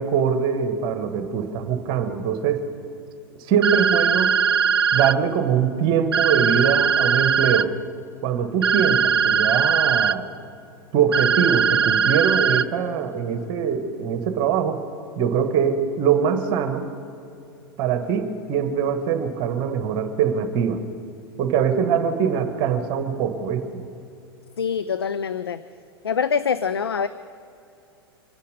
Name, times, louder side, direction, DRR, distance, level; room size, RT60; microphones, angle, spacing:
voice 1, 0.0-2.6 3.5-4.3 4.9-7.7 8.2-10.3 10.9-14.8 15.1-16.9 17.8-20.8 21.4-23.8, right 7 dB, 40° right, 7 dB, 1.4 m, -23 dB
sound 1, 3.6-5.1 6.1-7.6 8.6-10.1 11.1-12.6, right 7 dB, 75° right, 0.5 m, -20 dB
voice 2, 24.6-25.6 26.0-27.1, left 6 dB, 75° left, 12 dB, 0.5 m, -24 dB
25.0 x 10.0 x 5.3 m, 2.7 s
figure-of-eight pair, 90°, 13 cm